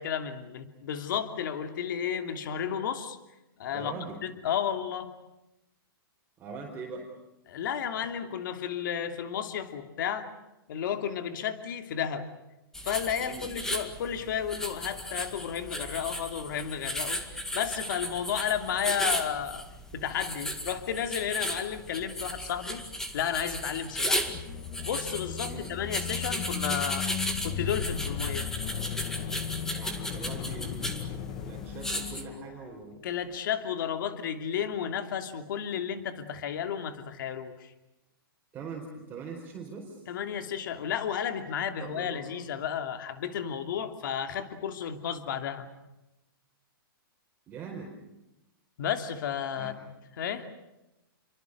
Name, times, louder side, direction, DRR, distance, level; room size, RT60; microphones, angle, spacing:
voice 1, 0.0-3.2 3.6-5.1 7.5-10.3 10.7-12.3 12.8-17.2 17.5-19.6 19.9-22.8 23.1-24.3 24.8-27.1 27.4-28.5 33.0-37.7 40.1-45.7 48.8-49.9 50.2-50.5, left 8 dB, 60° left, 7 dB, 2.8 m, -32 dB
voice 2, 3.7-4.2 6.4-7.1 13.2-13.5 25.4-25.7 29.7-33.0 38.5-40.0 41.8-42.3 47.5-48.0 49.6-49.7, right 4 dB, 15° right, -2 dB, 4.6 m, -42 dB
sound 1, 12.7-32.2, left 1 dB, 5° left, 2.0 m, -35 dB
sound 2, 24.0-32.8, left 9 dB, 35° left, 1.5 m, -36 dB
29.5 x 24.0 x 6.7 m, 0.95 s
hypercardioid pair, 150°, 12 cm